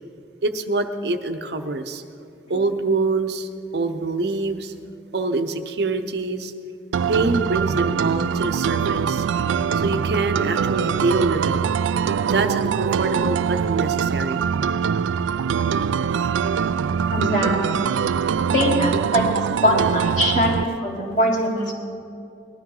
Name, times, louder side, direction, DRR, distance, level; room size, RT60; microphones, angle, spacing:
voice 1, 0.4-2.0 2.5-4.7 5.1-6.5 7.1-9.2 9.7-11.7 12.2-14.4, right 3 dB, 60° right, 7 dB, 0.8 m, -25 dB
sound 1, 6.9-20.6, right 7 dB, 90° right, 0.3 m, -23 dB
voice 2, 17.1-17.9 18.5-19.2 19.6-21.7, equal, 40° left, -2 dB, 3.0 m, -22 dB
20.5 x 12.5 x 3.8 m, 2.5 s
head